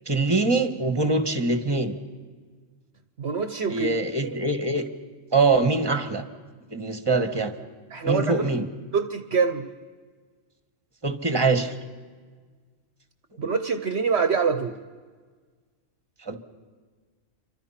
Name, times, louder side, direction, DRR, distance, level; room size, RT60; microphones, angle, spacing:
voice 1, 0.1-1.9 3.7-4.8 5.3-6.2 6.7-7.5 8.0-8.7 11.0-11.7 16.2-16.4, right 3 dB, 20° right, 8 dB, 1.6 m, -23 dB
voice 2, 3.2-4.4 7.9-8.5 8.9-9.7 13.4-14.7, right 5 dB, 60° right, 10 dB, 1.1 m, -25 dB
28.5 x 25.0 x 5.8 m, 1.5 s
omnidirectional pair, 1.3 m